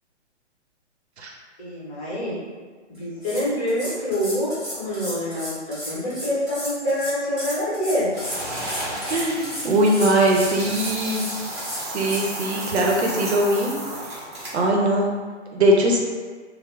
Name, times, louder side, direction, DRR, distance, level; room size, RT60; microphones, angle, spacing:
voice 1, 1.6-2.4 2.9-8.1, equal, 30° left, -9 dB, 1.1 m, -26 dB
sound 1, 2.9-3.0 3.2-12.2, equal, ahead, 1.2 m, -34 dB
sound 2, 8.1-14.7, right 1 dB, 25° right, 0.8 m, -33 dB
voice 2, 9.1-11.2 11.9-13.7 14.5-15.1 15.5-16.0, right 1 dB, 65° right, -1 dB, 0.7 m, -20 dB
3.0 x 2.1 x 3.4 m, 1.5 s
hypercardioid pair, 155°, 36 cm